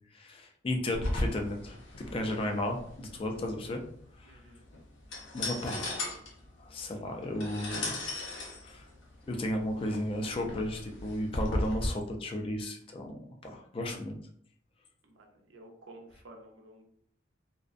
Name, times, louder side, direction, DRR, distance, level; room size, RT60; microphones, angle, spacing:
voice 1, 0.1-1.8 2.1-3.8 4.2-4.4 5.3-6.2 6.6-8.0 8.6-8.8 9.3-13.2 13.4-14.2, left 1 dB, 30° left, 3 dB, 0.3 m, -34 dB
sound 1, 0.9-11.9, left 1 dB, 80° left, 0.7 m, -37 dB
voice 2, 4.2-4.6 15.0-16.8, right 1 dB, 85° right, 3 dB, 0.5 m, -52 dB
2.5 x 2.1 x 2.4 m, 0.63 s
head